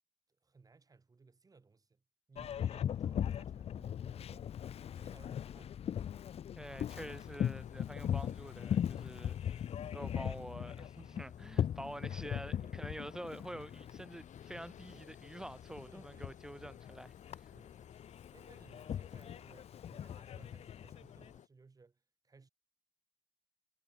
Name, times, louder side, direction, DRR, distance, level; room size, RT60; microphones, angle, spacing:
voice 1, 0.4-2.0 2.3-4.6 4.9-6.2 12.5-13.0 13.3-13.6 14.9-15.1 15.9-16.6 17.5-18.0 18.3-22.5, right 4 dB, 30° right, 6.8 m, -62 dB
Boat Water vehicle, 2.4-21.4, left 9 dB, 55° left, 0.4 m, -40 dB
voice 2, 6.6-17.5, right 1 dB, 5° right, 2.3 m, -47 dB
sound 1, 6.9-21.5, left 10 dB, 85° left, 3.1 m, -59 dB
wide cardioid pair, 130°, 12 cm